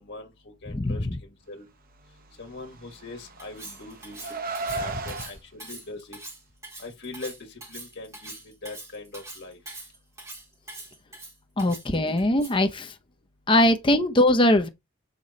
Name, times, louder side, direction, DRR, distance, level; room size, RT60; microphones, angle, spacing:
voice 1, 0.0-1.7 2.4-4.3 4.7-6.2 6.8-9.6, left 2 dB, 55° left, 1.8 m, -41 dB
voice 2, 0.7-1.2 11.6-12.9 13.5-14.7, left 1 dB, 25° left, 0.8 m, -21 dB
Car, 2.8-5.3, right 3 dB, 45° right, 0.8 m, -34 dB
Cutlery silverware, 3.4-12.7, right 2 dB, 15° right, 2.7 m, -43 dB
6.7 x 3.9 x 4.1 m
head